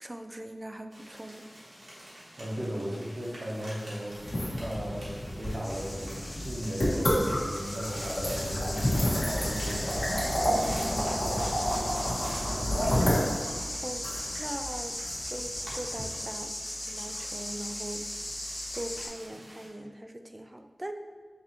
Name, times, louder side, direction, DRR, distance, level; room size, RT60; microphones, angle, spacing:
voice 1, 0.0-1.4 13.8-14.1 14.4-15.0 15.3-16.5 16.9-18.0 18.3-20.9, right 1 dB, 20° right, 7 dB, 0.3 m, -41 dB
sound 1, 0.9-19.7, equal, 65° right, 1.5 m, -47 dB
voice 2, 2.4-4.3 4.6-10.2 10.6-11.7, equal, 40° right, -4 dB, 1.0 m, -37 dB
sound 2, 4.1-16.0, equal, 75° left, 1.3 m, -30 dB
sound 3, 5.6-19.1, left 1 dB, 50° left, 1.4 m, -37 dB
6.0 x 2.7 x 2.9 m, 1.5 s
wide cardioid pair, 70°, 0 cm